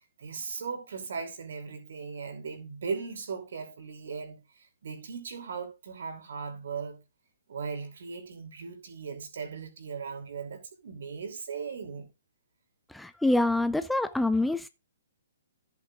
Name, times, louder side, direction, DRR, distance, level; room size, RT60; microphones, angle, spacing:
voice 1, 0.2-7.0 7.5-12.1, right 5 dB, 55° right, 3.0 m, -38 dB
voice 2, 12.9-14.7, left 2 dB, ahead, 0.4 m, -26 dB
14.0 x 8.3 x 2.5 m
figure-of-eight pair, 125°, 0 cm